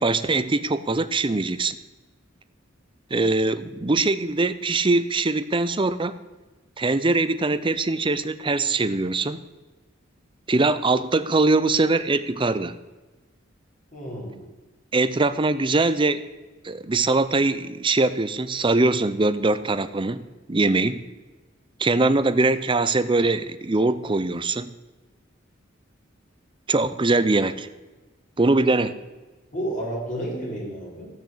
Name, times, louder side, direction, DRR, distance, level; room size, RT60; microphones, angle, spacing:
voice 1, 0.0-1.8 3.1-6.1 6.8-9.4 10.5-12.8 14.9-16.2 16.6-20.2 20.5-21.0 21.8-24.7 26.7-27.7 28.4-28.9, right 3 dB, 25° right, 13 dB, 0.6 m, -22 dB
voice 2, 13.9-14.4 28.8-28.9 29.5-31.1, right 1 dB, 40° left, -4 dB, 4.8 m, -31 dB
15.0 x 6.6 x 8.5 m, 1.2 s
head